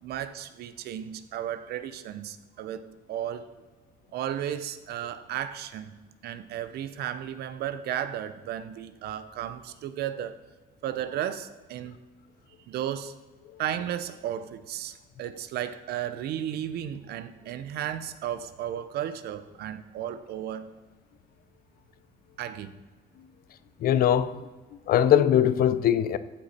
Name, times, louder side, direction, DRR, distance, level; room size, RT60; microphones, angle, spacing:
voice 1, 0.0-3.5 4.1-5.9 6.2-10.4 10.8-12.0 12.7-13.1 13.6-20.7 22.4-22.8, right 10 dB, 70° right, 0.7 m, -34 dB
voice 2, 23.8-24.4 24.9-26.2, left 10 dB, 60° left, 0.6 m, -21 dB
14.0 x 5.3 x 4.3 m
cardioid pair, 110°, 17 cm